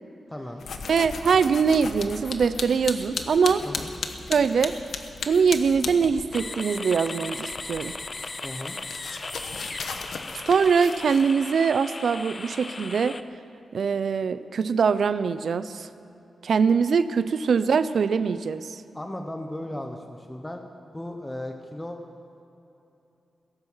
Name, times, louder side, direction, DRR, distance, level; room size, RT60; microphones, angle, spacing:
voice 1, 0.3-0.6 3.6-3.9 8.4-8.8 18.9-20.6 20.9-22.0, left 1 dB, 10° left, 4 dB, 0.9 m, -36 dB
sound 1, 0.6-6.5 6.8-11.3, left 4 dB, 70° left, 1.1 m, -36 dB
voice 2, 0.9-3.7 4.3-4.7 5.2-7.9 10.4-13.2 13.7-15.9 16.4-18.8, right 6 dB, 65° right, 13 dB, 0.5 m, -23 dB
sound 2, 6.3-13.2, left 3 dB, 25° left, 0.5 m, -37 dB
16.5 x 14.5 x 5.6 m, 2.9 s
wide cardioid pair, 155°, 0 cm